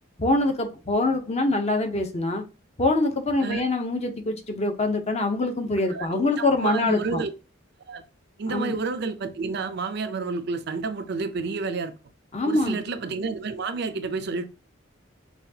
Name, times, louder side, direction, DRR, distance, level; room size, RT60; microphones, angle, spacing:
voice 1, 0.2-2.4 2.8-7.2 8.5-8.7 12.3-12.8, left 2 dB, 35° left, 0.7 m, -24 dB
voice 2, 5.9-7.3 7.9-8.0 8.4-11.9 12.4-14.4, right 4 dB, 55° right, 0.5 m, -30 dB
5.7 x 2.3 x 2.8 m
head